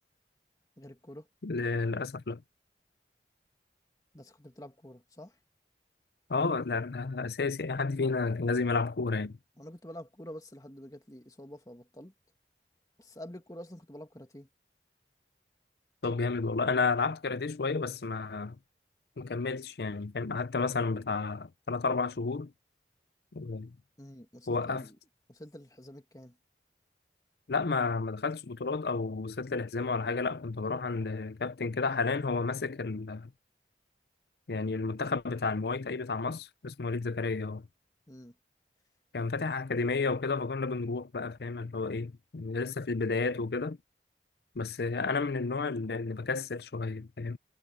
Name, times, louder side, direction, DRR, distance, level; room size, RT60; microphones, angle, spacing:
voice 1, 0.8-1.3 4.1-5.4 9.6-12.1 13.0-14.5 24.0-25.0 25.3-26.4 38.1-38.4, equal, 20° left, 2.0 m, -47 dB
voice 2, 1.4-2.4 6.3-9.4 16.0-18.6 19.2-22.5 23.3-23.7 24.5-24.9 27.5-33.3 34.5-37.6 39.1-43.8 44.6-47.4, left 4 dB, 65° left, 0.6 m, -31 dB
head